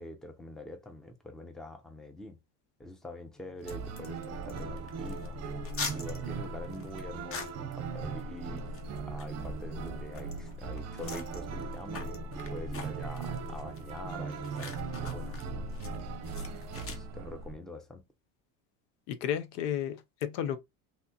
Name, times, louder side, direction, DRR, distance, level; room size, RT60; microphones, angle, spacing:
voice 1, 0.0-2.4 2.8-5.4 5.9-8.6 9.0-15.6 16.8-18.0, left 1 dB, ahead, 0.5 m, -45 dB
sound 1, 3.2-10.8, left 1 dB, 45° left, 2.5 m, -58 dB
sound 2, 3.6-17.0, left 4 dB, 30° left, 0.8 m, -46 dB
sound 3, 3.6-17.5, right 4 dB, 35° right, 0.7 m, -38 dB
voice 2, 19.1-20.6, left 10 dB, 90° left, 0.7 m, -32 dB
3.3 x 2.8 x 2.7 m
supercardioid pair, 115°, 46 cm